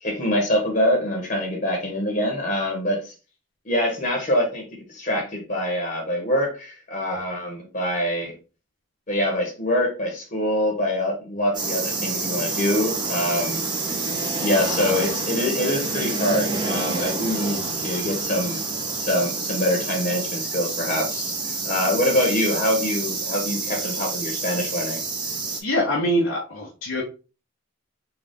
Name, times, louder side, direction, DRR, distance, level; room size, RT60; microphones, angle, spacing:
voice 1, 0.0-3.1 3.6-8.3 9.1-13.6 14.4-18.6 18.9-25.0, left 1 dB, 40° left, 1.0 m, -25 dB
sound 1, 11.5-25.6, right 3 dB, 20° right, 0.6 m, -28 dB
voice 2, 25.6-27.0, equal, 80° left, 0.8 m, -24 dB
3.8 x 2.3 x 3.4 m
head